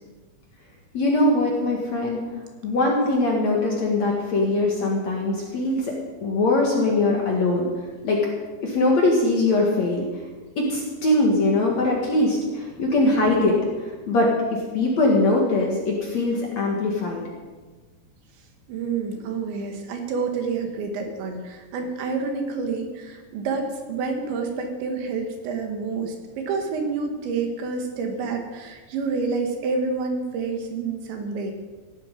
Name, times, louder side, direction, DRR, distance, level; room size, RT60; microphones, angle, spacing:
voice 1, 0.9-2.2 2.6-5.9 6.2-7.7 8.0-8.3 8.6-10.1 10.6-17.2, left 2 dB, 50° left, -1 dB, 2.3 m, -22 dB
voice 2, 18.7-31.5, right 4 dB, 80° right, 4 dB, 4.1 m, -28 dB
16.5 x 12.0 x 5.3 m, 1.3 s
omnidirectional pair, 5.2 m